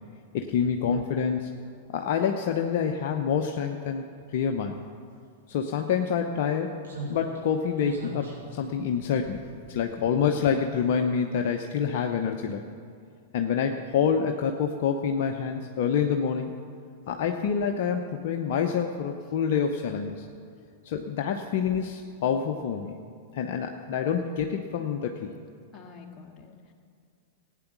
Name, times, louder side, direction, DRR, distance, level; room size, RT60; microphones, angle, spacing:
voice 1, 0.3-1.6 1.9-4.0 4.3-4.8 5.5-6.7 7.1-9.4 9.7-12.6 13.3-16.5 17.1-20.3 20.8-23.0 23.3-25.3, left 7 dB, 55° left, 4 dB, 0.8 m, -27 dB
Slam, 5.5-5.6 6.8-10.4 10.7-10.8, right 3 dB, 75° right, 4.3 m, -42 dB
voice 2, 25.7-26.7, left 5 dB, 25° left, 0 dB, 2.1 m, -48 dB
17.0 x 9.1 x 6.1 m, 2.2 s
figure-of-eight pair, 100°, 0 cm